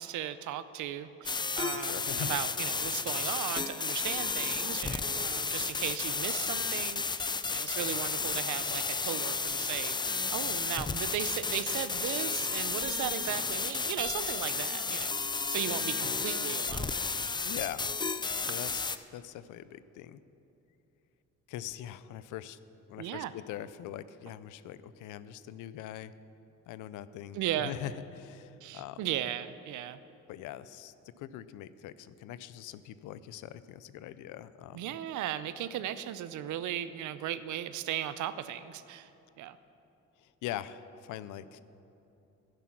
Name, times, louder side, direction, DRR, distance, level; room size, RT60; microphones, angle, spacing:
voice 1, 0.0-10.0 10.3-17.0 23.0-23.3 27.3-27.8 28.6-30.0 34.7-39.1 39.4-39.6, right 11 dB, 80° right, 14 dB, 0.6 m, -36 dB
sound 1, 1.3-19.0, left 4 dB, 15° left, 0.3 m, -32 dB
voice 2, 1.7-2.4 7.8-7.9 17.4-17.9 18.3-20.2 21.5-22.6 22.9-26.1 26.7-29.0 30.3-35.0 40.2-41.6, left 12 dB, 85° left, 15 dB, 0.5 m, -42 dB
11.0 x 10.5 x 5.9 m, 2.9 s
cardioid pair, 90°, 30 cm